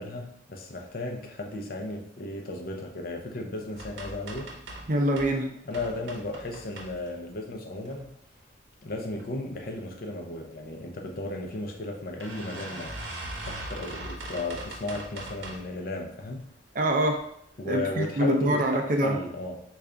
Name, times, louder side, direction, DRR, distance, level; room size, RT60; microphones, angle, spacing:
voice 1, 0.0-4.5 5.7-8.2 8.8-13.0 13.4-16.5 17.6-19.6, left 2 dB, 50° left, 3 dB, 0.5 m, -35 dB
sound 1, 3.8-5.4 5.7-7.3 7.8-8.4 8.9-9.3 9.5-9.6 9.9-10.0 11.1-11.2 11.6-11.7 12.2-15.8 16.2-16.6 17.1-17.2 17.6-17.7, right 1 dB, 75° right, 0.8 m, -40 dB
voice 2, 4.9-5.5 16.7-17.2 17.7-19.2, right 1 dB, 45° right, 3 dB, 0.5 m, -25 dB
3.3 x 2.4 x 3.6 m, 0.73 s
head